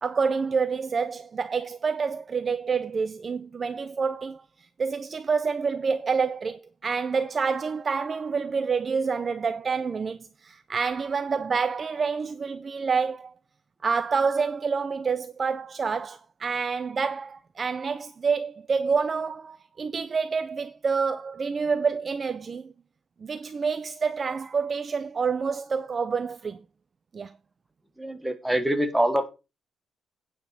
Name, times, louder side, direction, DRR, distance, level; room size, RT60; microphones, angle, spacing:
voice 1, 0.0-13.3 13.8-22.7 23.2-26.6 27.1-27.3, right 5 dB, 30° right, 0.5 m, -28 dB
voice 2, 28.0-29.3, right 1 dB, 5° right, 1.3 m, -25 dB
9.1 x 5.2 x 6.6 m
cardioid pair, 160°, 0 cm